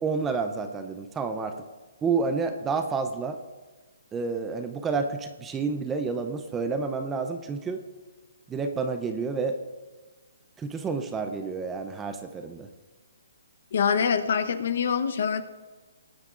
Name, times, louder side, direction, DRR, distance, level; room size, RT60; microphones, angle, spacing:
voice 1, 0.0-1.6 2.0-3.4 4.1-7.8 8.5-9.6 10.6-12.7, right 4 dB, 10° right, 7 dB, 0.5 m, -29 dB
voice 2, 13.7-15.4, left 6 dB, 50° left, 9 dB, 0.9 m, -25 dB
18.5 x 10.0 x 2.5 m, 1.3 s
hypercardioid pair, 170°, 0 cm